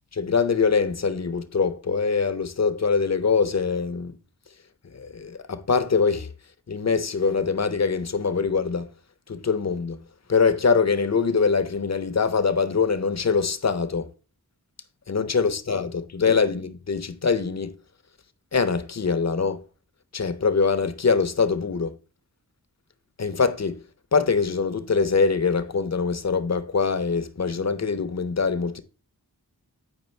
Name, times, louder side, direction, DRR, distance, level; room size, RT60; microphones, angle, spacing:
voice 1, 0.2-4.1 4.9-6.3 6.7-8.8 9.3-10.0 10.3-14.1 15.1-17.7 18.5-19.6 20.1-21.9 23.2-23.8 24.1-28.8, left 5 dB, 45° left, 0.7 m, -23 dB
8.1 x 4.9 x 3.2 m
wide cardioid pair, 45°, 37 cm